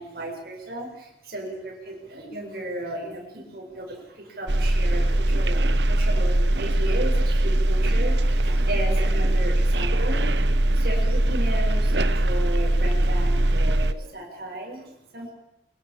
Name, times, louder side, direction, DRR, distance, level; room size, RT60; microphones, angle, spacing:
voice 1, 0.0-15.3, right 1 dB, 60° right, -1 dB, 8.0 m, -35 dB
sound 1, 4.5-13.9, right 1 dB, 80° right, 1.1 m, -21 dB
24.5 x 23.5 x 7.4 m, 0.83 s
head